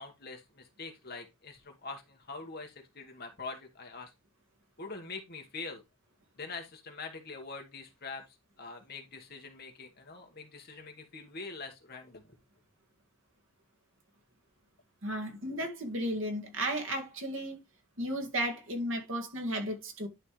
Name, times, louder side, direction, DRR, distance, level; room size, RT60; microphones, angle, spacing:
voice 1, 0.0-4.1 4.8-5.8 6.4-12.4, left 4 dB, 45° left, 1.6 m, -44 dB
voice 2, 15.0-17.6 18.0-20.1, right 1 dB, 60° right, 2.0 m, -34 dB
11.0 x 4.3 x 3.2 m
head